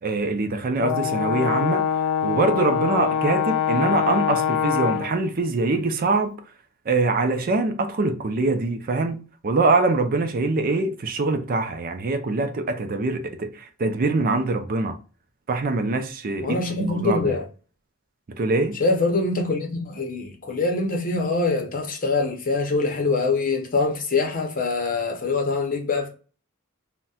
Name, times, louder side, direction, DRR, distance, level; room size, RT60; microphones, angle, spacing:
voice 1, 0.0-1.9 2.2-6.3 6.9-15.0 15.5-17.3 18.4-18.8, right 3 dB, 45° right, 0.4 m, -24 dB
Brass instrument, 0.8-5.2, left 8 dB, 90° left, 0.3 m, -24 dB
voice 2, 16.4-17.5 18.8-26.1, left 3 dB, 40° left, 0.7 m, -24 dB
4.0 x 2.1 x 2.3 m
head